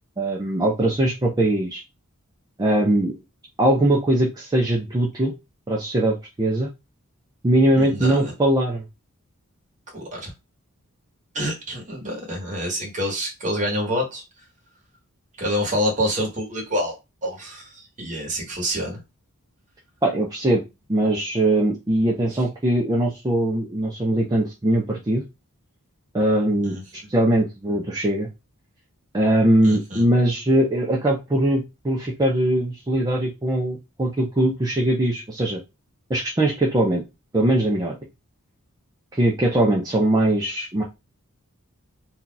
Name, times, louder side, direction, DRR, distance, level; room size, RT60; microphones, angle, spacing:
voice 1, 0.2-1.8 2.6-3.1 3.6-5.3 5.7-6.7 7.4-8.8 20.0-20.6 20.9-25.2 26.1-26.7 27.1-28.3 29.1-35.6 36.1-37.0 37.3-38.0 39.1-40.8, right 1 dB, 15° right, 0.5 m, -21 dB
voice 2, 7.8-8.3 9.9-10.3 11.3-14.2 15.4-17.0 17.2-19.0 26.6-26.8 29.6-30.0, equal, 35° right, 1.3 m, -27 dB
2.8 x 2.4 x 3.8 m
head